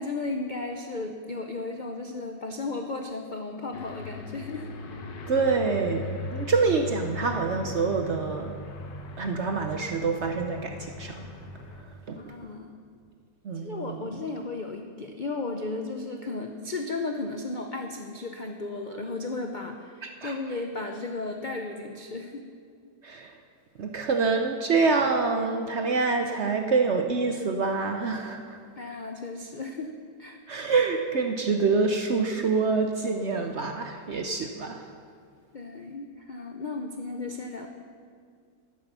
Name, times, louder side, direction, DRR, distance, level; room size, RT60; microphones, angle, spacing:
voice 1, 0.0-4.7 12.1-12.7 13.5-22.5 28.8-29.9 30.2-30.4 35.5-37.7, left 3 dB, 60° left, 4 dB, 0.4 m, -34 dB
Aircraft, 3.7-11.8, left 3 dB, 85° left, 1.8 m, -38 dB
voice 2, 5.3-6.1 6.3-8.5 9.2-11.2 12.1-12.2 13.4-14.1 20.0-20.3 23.0-23.3 23.8-28.6 30.5-34.8, right 4 dB, 55° right, 4 dB, 0.8 m, -26 dB
11.0 x 10.5 x 6.8 m, 2.1 s
omnidirectional pair, 1.9 m